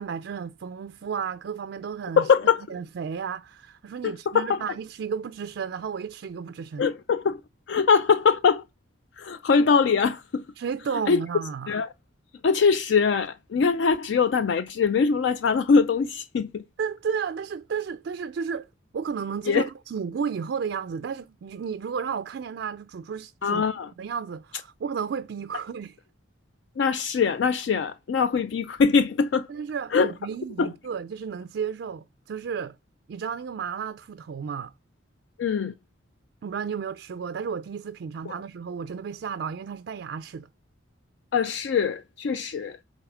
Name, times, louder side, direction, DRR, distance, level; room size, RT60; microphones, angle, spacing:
voice 1, 0.0-2.3 2.7-6.9 10.6-11.8 16.8-18.7 18.9-23.6 24.0-26.0 29.5-32.8 33.1-34.7 36.4-40.5, right 6 dB, 60° right, 0.3 m, -33 dB
voice 2, 2.2-2.6 4.0-4.6 6.8-7.4 7.7-8.6 9.2-10.4 11.1-11.2 11.7-11.9 12.4-16.6 19.5-19.6 23.4-23.9 26.8-29.5 29.9-30.1 30.6-30.7 35.4-35.7 38.3-38.4 41.3-42.8, left 5 dB, 65° left, 0.4 m, -22 dB
8.0 x 3.5 x 4.9 m
head